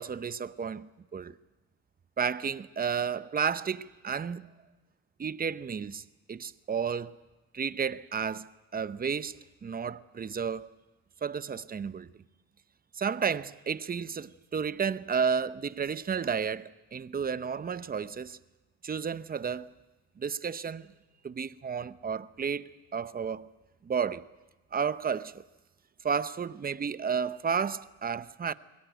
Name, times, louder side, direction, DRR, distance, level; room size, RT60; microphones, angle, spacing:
voice 1, 0.0-1.4 2.2-4.5 5.2-6.0 6.3-7.2 7.5-10.7 11.2-12.1 12.9-18.4 18.8-19.7 20.2-20.9 21.2-23.5 23.8-24.3 24.7-25.4 26.0-28.5, right 6 dB, 30° right, 0.8 m, -32 dB
22.5 x 17.0 x 9.3 m
cardioid pair, 90°, 30 cm